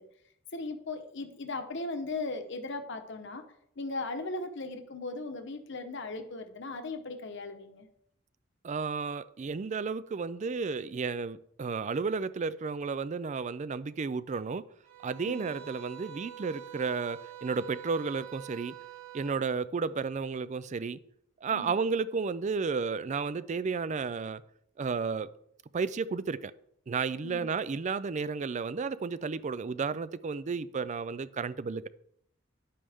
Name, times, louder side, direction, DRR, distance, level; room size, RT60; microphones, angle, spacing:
voice 1, 0.5-3.4 3.8-7.9 15.2-15.5 21.5-21.8 27.2-27.5, left 2 dB, 65° left, 6 dB, 1.1 m, -38 dB
voice 2, 8.6-14.7 15.0-18.8 19.1-21.0 21.4-24.4 24.8-25.3 25.7-26.5 26.9-31.9, right 5 dB, 35° right, 16 dB, 0.4 m, -32 dB
sound 1, 14.8-19.4, right 13 dB, 80° right, 2.0 m, -46 dB
11.0 x 8.6 x 3.6 m, 0.71 s
head